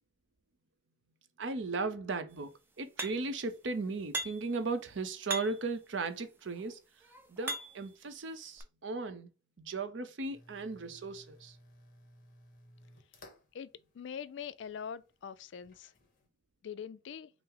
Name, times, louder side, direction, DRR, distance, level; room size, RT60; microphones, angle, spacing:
voice 1, 1.4-6.8 7.3-9.3 9.6-11.6, right 3 dB, 70° right, 0.6 m, -37 dB
sound 1, 3.0-3.4 4.1-4.6 5.3-5.7 6.5-7.9 8.6-8.7, right 2 dB, 10° right, 0.5 m, -39 dB
sound 2, 10.3-16.3, left 1 dB, 45° left, 1.0 m, -60 dB
voice 2, 13.9-15.9 16.6-17.3, left 7 dB, 65° left, 0.3 m, -43 dB
5.5 x 2.0 x 3.7 m
head